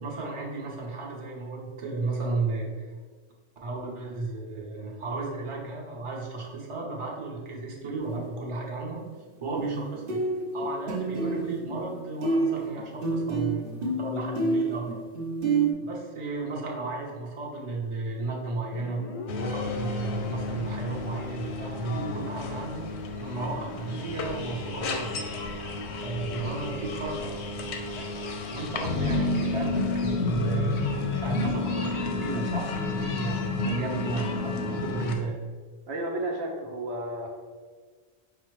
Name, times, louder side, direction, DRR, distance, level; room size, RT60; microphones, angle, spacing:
voice 1, 0.0-3.0 3.6-9.0 9.4-10.2 10.5-13.6 14.0-15.0 15.8-19.0 19.4-22.9 23.2-25.2 25.9-27.2 28.5-35.3, right 3 dB, 35° right, -2 dB, 0.7 m, -34 dB
sound 1, 8.0-8.2 9.6-9.8 10.1-11.9 12.2-15.7, right 3 dB, 60° right, 0.9 m, -28 dB
Guitar, 18.7-22.2, left 3 dB, 60° left, 0.3 m, -41 dB
sound 2, 19.3-35.2, left 3 dB, 90° left, 0.9 m, -31 dB
voice 2, 35.9-37.3, right 1 dB, 80° right, 1 dB, 1.0 m, -32 dB
5.0 x 2.1 x 4.6 m, 1.5 s
omnidirectional pair, 1.1 m